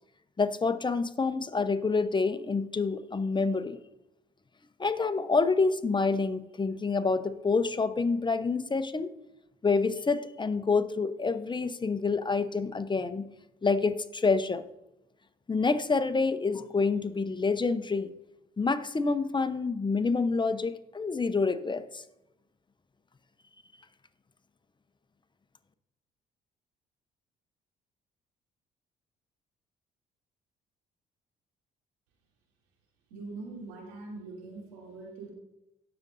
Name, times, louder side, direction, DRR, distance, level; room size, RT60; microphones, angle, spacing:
voice 1, 0.4-3.8 4.8-9.1 9.6-13.3 13.6-14.6 15.5-18.1 18.6-22.0, left 4 dB, 25° left, 11 dB, 0.9 m, -27 dB
voice 2, 33.1-35.3, right 3 dB, 85° right, -2 dB, 2.9 m, -42 dB
17.5 x 6.9 x 2.7 m, 0.88 s
hypercardioid pair, 55°, 19 cm